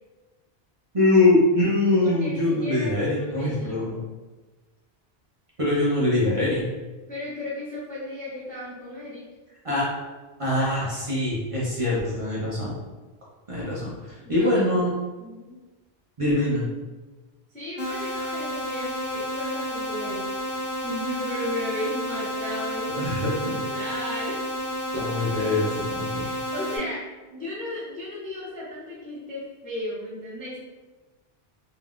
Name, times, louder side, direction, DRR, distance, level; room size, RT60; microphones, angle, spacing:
voice 1, 0.9-3.9 5.6-6.7 9.6-9.9 10.4-12.8 13.5-14.9 16.2-16.6 23.0-23.5 24.9-26.3, left 2 dB, 35° right, -7 dB, 0.7 m, -23 dB
voice 2, 2.0-4.0 7.1-9.2 14.2-14.7 15.2-15.6 17.5-24.5 24.9-25.0 25.4-25.5 26.1-27.0 27.3-30.6, left 1 dB, 10° left, -7 dB, 0.4 m, -35 dB
sound 1, 17.8-26.8, equal, 65° left, 0.8 m, -31 dB
3.5 x 2.1 x 2.4 m, 1.2 s
omnidirectional pair, 1.1 m